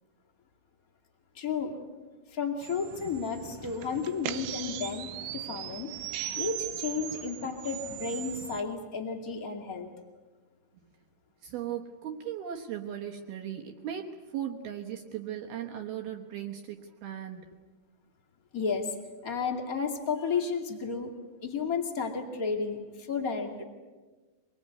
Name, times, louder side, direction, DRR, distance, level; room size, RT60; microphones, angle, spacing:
voice 1, 1.3-1.7 2.3-5.9 6.3-9.9 18.5-18.9 19.2-21.1 21.4-23.6, left 5 dB, 75° left, 1 dB, 0.8 m, -32 dB
charging sound, 2.6-8.6, right 12 dB, 90° right, 3.8 m, -39 dB
voice 2, 11.4-17.5, right 10 dB, 70° right, 3 dB, 2.5 m, -37 dB
25.0 x 21.0 x 9.4 m, 1.3 s
omnidirectional pair, 5.8 m